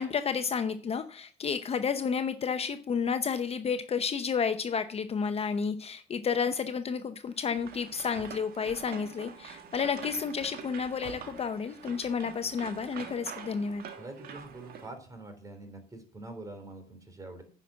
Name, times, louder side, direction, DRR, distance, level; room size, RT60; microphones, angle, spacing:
voice 1, 0.0-13.8, left 6 dB, 35° left, 9 dB, 0.7 m, -31 dB
sound 1, 7.3-14.9, right 7 dB, 65° right, 1.8 m, -45 dB
voice 2, 14.0-17.4, right 2 dB, 20° right, 6 dB, 3.3 m, -45 dB
9.8 x 5.9 x 7.5 m, 0.43 s
cardioid pair, 110°, 17 cm